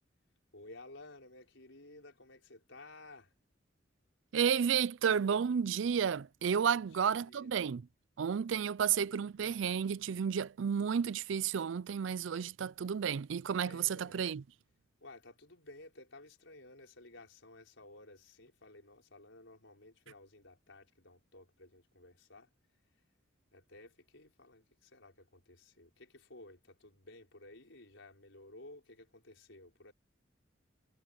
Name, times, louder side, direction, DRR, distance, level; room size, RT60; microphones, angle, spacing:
voice 1, 0.5-3.3 6.6-7.5 13.6-14.2 15.0-22.5 23.5-29.9, left 2 dB, 90° left, 4.9 m, -55 dB
voice 2, 4.3-7.8 8.2-14.4, right 7 dB, 80° right, 0.4 m, -32 dB
head